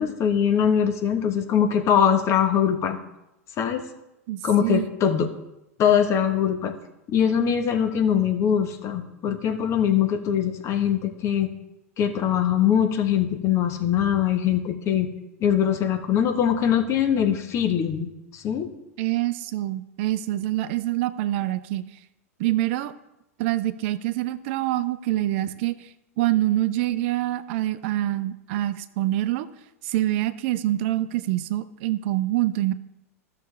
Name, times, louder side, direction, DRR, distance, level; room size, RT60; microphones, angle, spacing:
voice 1, 0.0-3.0 3.6-3.8 4.4-5.3 5.8-6.7 7.1-11.5 12.0-15.1 15.4-18.1 18.3-18.7, left 8 dB, 35° left, 6 dB, 1.0 m, -22 dB
voice 2, 4.3-4.9 19.0-21.8 22.4-22.9 23.4-25.7 26.2-29.5 29.8-32.7, right 15 dB, 55° right, 13 dB, 0.5 m, -25 dB
13.0 x 6.6 x 3.2 m, 0.91 s
hypercardioid pair, 95°, 8 cm